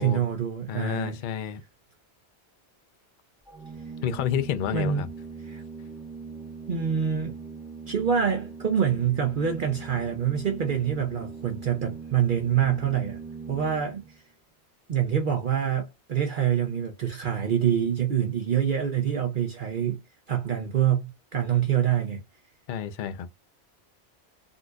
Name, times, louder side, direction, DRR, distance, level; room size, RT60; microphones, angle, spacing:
voice 1, 0.0-1.2 4.7-5.1 5.4-5.6 6.7-7.3 7.9-13.2 13.5-14.2 14.9-20.0 20.3-22.2, right 8 dB, 55° right, 0.8 m, -26 dB
voice 2, 0.7-1.6 4.0-5.1 22.7-23.3, left 9 dB, 60° left, 0.6 m, -29 dB
Organ, 3.5-14.2, right 4 dB, ahead, 1.1 m, -41 dB
3.8 x 2.5 x 2.3 m
omnidirectional pair, 1.1 m